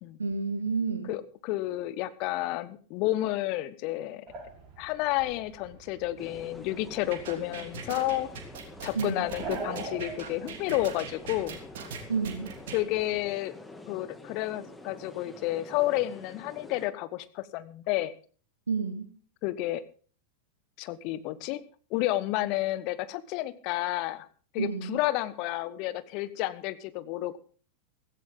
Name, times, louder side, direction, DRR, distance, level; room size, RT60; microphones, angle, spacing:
voice 1, 0.2-1.1 9.0-9.3 12.1-12.5 18.7-19.1 24.6-25.0, right 5 dB, 75° right, 8 dB, 1.8 m, -30 dB
voice 2, 1.1-4.2 4.8-8.3 8.8-11.6 12.7-13.5 13.9-18.1 19.4-19.8 20.8-21.6 21.9-24.3 24.5-27.4, left 16 dB, 45° left, 14 dB, 1.2 m, -31 dB
sound 1, 4.3-13.2, right 3 dB, 30° right, 7.2 m, -45 dB
sound 2, 6.2-16.9, left 2 dB, 10° left, 2.3 m, -47 dB
sound 3, 7.1-12.8, right 7 dB, 55° right, 3.2 m, -40 dB
16.5 x 15.0 x 3.8 m, 0.40 s
figure-of-eight pair, 90°, 0 cm